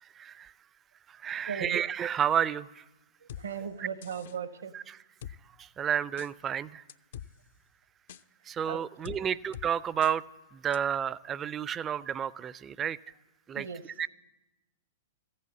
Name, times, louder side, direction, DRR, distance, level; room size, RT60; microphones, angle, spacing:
voice 1, 0.0-0.5 1.1-2.8 4.7-4.8 5.6-6.8 8.4-10.2 10.5-13.0 13.5-13.7 14.0-14.1, right 9 dB, 20° right, 19 dB, 0.4 m, -31 dB
voice 2, 1.5-1.8 3.2-4.7 8.7-9.2 13.5-13.8, right 7 dB, 70° right, 13 dB, 0.9 m, -38 dB
sound 1, 3.3-3.4 4.0-4.4 5.2-5.4 6.2-6.3 6.9-7.3 8.1-8.2 9.0-9.2 9.5-9.7 10.0-10.1 10.7-10.8, left 10 dB, 55° left, 0.4 m, -43 dB
14.5 x 8.5 x 8.2 m, 1.0 s
figure-of-eight pair, 105°, 0 cm